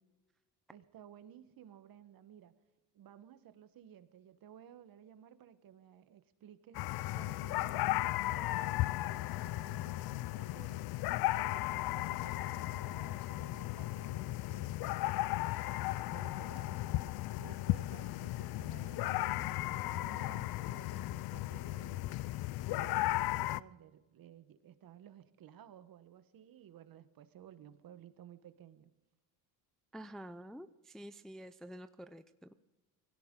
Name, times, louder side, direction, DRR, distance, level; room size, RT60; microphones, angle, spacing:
voice 1, 0.7-2.5 2.9-6.8 7.1-10.9 11.3-14.9 16.1-17.1 17.4-22.1 22.5-28.9, right 10 dB, 50° right, 13 dB, 1.2 m, -56 dB
sound 1, 6.7-23.6, left 17 dB, 55° left, 0.5 m, -35 dB
voice 2, 29.9-32.5, equal, ahead, 10 dB, 0.5 m, -49 dB
20.0 x 16.5 x 3.8 m, 1.1 s
supercardioid pair, 100°, 46 cm